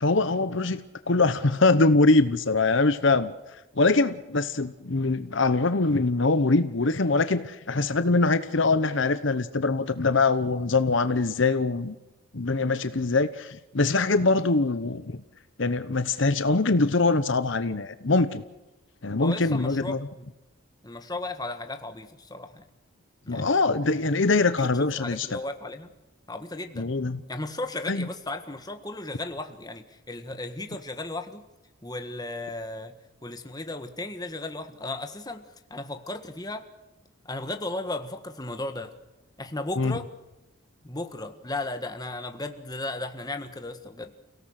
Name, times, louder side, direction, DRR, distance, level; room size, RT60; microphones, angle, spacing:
voice 1, 0.0-3.3 3.8-11.9 12.3-15.2 15.6-18.4 19.0-20.0 23.3-25.4 26.8-27.2 27.9-28.1 39.8-39.9, left 3 dB, 60° left, 12 dB, 0.9 m, -23 dB
voice 2, 19.2-20.2 20.8-22.6 23.3-23.6 24.3-25.9 26.3-26.8 27.3-31.4 31.8-32.9 33.2-35.4 35.7-36.7 37.2-38.9 39.4-40.1 40.8-44.1, left 2 dB, 20° left, 7 dB, 1.6 m, -35 dB
30.0 x 17.5 x 6.6 m, 1.0 s
head